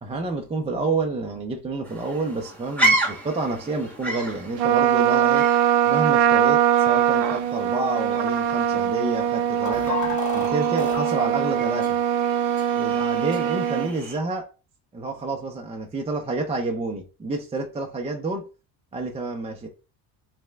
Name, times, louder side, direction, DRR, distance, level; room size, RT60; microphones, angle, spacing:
voice 1, 0.0-5.5 5.9-10.0 10.3-12.0 12.7-14.5 14.9-18.4 18.9-19.7, right 3 dB, 15° right, 0.5 m, -29 dB
sound 1, 1.8-14.2, right 2 dB, 5° left, 1.2 m, -32 dB
Trumpet, 4.6-13.9, right 10 dB, 70° right, 0.6 m, -22 dB
sound 2, 9.6-11.1 11.8-11.9 12.6-12.7 13.3-13.4, left 3 dB, 40° left, 1.9 m, -31 dB
3.4 x 3.1 x 3.3 m
cardioid pair, 115°, 45 cm